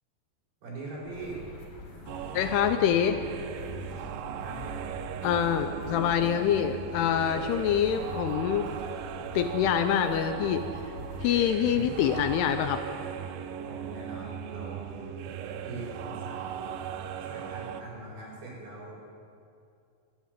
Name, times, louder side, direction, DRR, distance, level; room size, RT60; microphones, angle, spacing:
voice 1, 0.6-1.4 4.1-4.7 11.7-11.9 13.6-15.1 15.6-19.2, right 2 dB, 60° right, -6 dB, 6.6 m, -42 dB
sound 1, 1.0-12.4, left 1 dB, 50° left, 4.3 m, -44 dB
sound 2, 2.1-17.8, right 8 dB, 85° right, 2.1 m, -38 dB
voice 2, 2.3-3.2 5.2-8.7 9.4-10.6 11.2-12.8, left 9 dB, 80° left, 8 dB, 2.5 m, -25 dB
11.5 x 11.5 x 9.0 m, 2.4 s
omnidirectional pair, 5.0 m